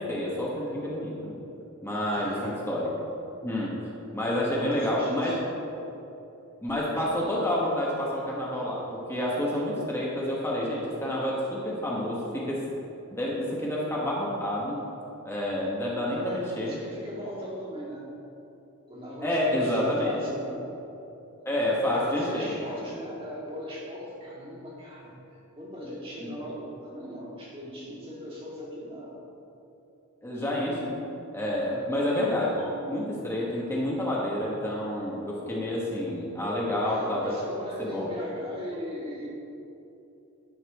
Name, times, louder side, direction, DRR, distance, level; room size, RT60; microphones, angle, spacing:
voice 1, 0.0-1.4 1.8-2.9 3.4-3.8 4.1-5.3 6.6-12.6 13.1-14.8 15.2-16.8 19.2-20.2 21.4-22.5 26.2-26.3 30.2-31.0 31.3-37.3 37.8-38.0, left 1 dB, 10° left, -5 dB, 1.2 m, -29 dB
voice 2, 2.1-2.5 4.4-5.4 16.0-18.1 18.9-20.7 21.6-29.2 31.6-31.9 36.8-39.3, equal, 25° right, -6 dB, 2.2 m, -38 dB
11.5 x 4.2 x 6.1 m, 2.9 s
head